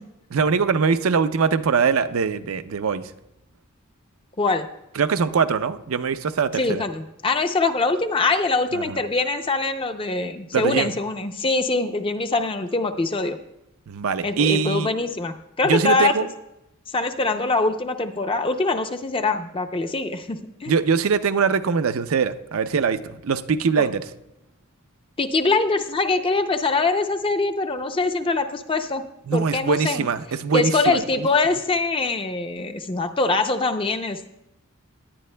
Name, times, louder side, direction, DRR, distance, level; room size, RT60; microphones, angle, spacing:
voice 1, 0.3-3.0 5.0-6.8 8.7-9.0 10.5-10.9 13.9-14.9 15.6-16.3 20.7-24.0 29.3-31.0, right 5 dB, 80° right, 10 dB, 0.5 m, -22 dB
voice 2, 6.5-13.4 14.2-16.1 16.9-20.8 23.8-23.9 25.2-29.0 29.3-30.1 30.5-34.3, left 3 dB, 25° left, 7 dB, 0.5 m, -23 dB
17.5 x 10.5 x 2.2 m, 0.88 s
head